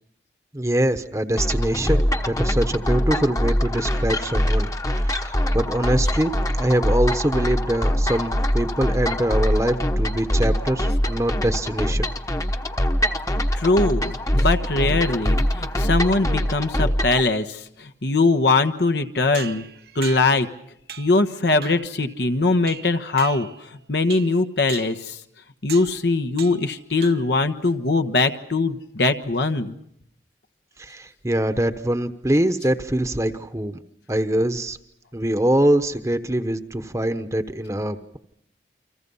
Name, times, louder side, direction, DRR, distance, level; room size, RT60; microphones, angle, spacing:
voice 1, 0.5-4.7 5.0-12.1 30.8-33.8 34.1-34.8 35.1-38.2, right 1 dB, 15° right, 9 dB, 1.0 m, -23 dB
sound 1, 1.4-17.2, equal, 20° left, 1.1 m, -23 dB
voice 2, 13.5-19.6 19.9-20.5 21.0-25.2 25.6-29.8, left 3 dB, 75° left, 8 dB, 1.3 m, -21 dB
sound 2, 19.3-20.5 20.9-21.2 21.6-22.0 22.7-23.7 24.1-24.4 24.7-25.1 25.7-26.0 26.4-26.7 27.0-27.4, right 8 dB, 65° right, 1.1 m, -38 dB
29.5 x 25.5 x 5.6 m, 0.72 s
head